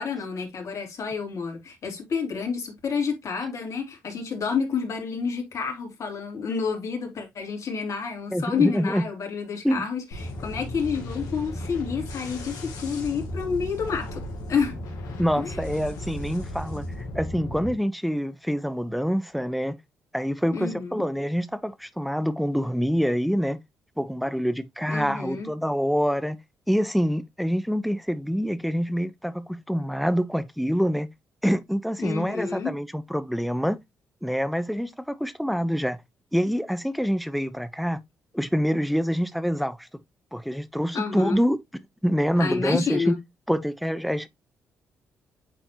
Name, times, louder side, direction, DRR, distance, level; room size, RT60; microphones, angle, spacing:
voice 1, 0.0-14.2 14.5-14.8 15.4-15.6 20.5-21.0 24.9-25.5 32.0-32.7 40.9-41.4 42.4-43.2, left 5 dB, 60° left, 3.3 m, -29 dB
voice 2, 8.3-9.0 9.6-9.8 15.2-19.8 20.1-23.6 24.0-26.4 26.7-31.1 31.4-33.8 34.2-36.0 36.3-38.0 38.3-39.9 40.3-41.6 42.0-43.1 43.5-44.3, equal, ahead, 0.9 m, -26 dB
sound 1, 10.1-17.7, left 1 dB, 75° left, 2.7 m, -35 dB
9.1 x 4.4 x 2.9 m
supercardioid pair, 55°, 6 cm